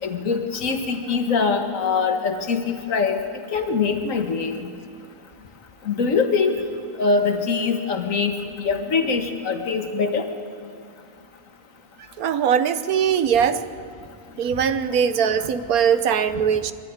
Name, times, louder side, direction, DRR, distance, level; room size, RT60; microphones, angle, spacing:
voice 1, 0.0-3.2 3.5-4.7 5.9-6.6 7.0-10.3 15.4-15.5, left 5 dB, 65° left, 6 dB, 1.8 m, -23 dB
voice 2, 12.2-13.6 14.4-16.7, right 7 dB, 80° right, 12 dB, 1.3 m, -21 dB
21.5 x 13.5 x 9.6 m, 2.2 s
omnidirectional pair, 1.5 m